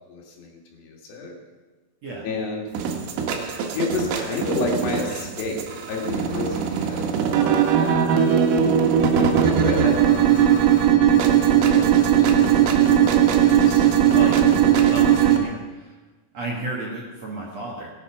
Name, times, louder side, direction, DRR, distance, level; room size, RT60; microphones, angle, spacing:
voice 1, 0.1-1.3 2.2-2.7 3.7-8.3 9.2-12.5 12.9-13.3 13.6-13.8, left 3 dB, 60° left, 0 dB, 3.9 m, -31 dB
sound 1, 2.8-15.4, right 9 dB, 75° right, 3.8 m, -19 dB
voice 2, 14.1-14.5 14.9-15.9 16.3-17.9, right 2 dB, 55° right, -4 dB, 2.0 m, -32 dB
19.0 x 8.5 x 5.8 m, 1.3 s
omnidirectional pair, 5.8 m